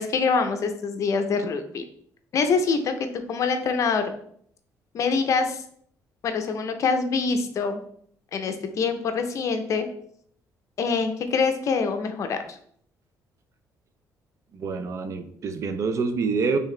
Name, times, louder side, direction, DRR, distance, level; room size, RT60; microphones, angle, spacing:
voice 1, 0.0-1.8 2.3-4.0 4.9-5.6 6.2-7.8 8.3-9.9 10.8-12.4, left 5 dB, 50° left, 7 dB, 0.6 m, -25 dB
voice 2, 14.5-16.6, right 4 dB, 50° right, 8 dB, 0.5 m, -26 dB
4.6 x 3.4 x 3.2 m, 0.64 s
cardioid pair, 125°, 7 cm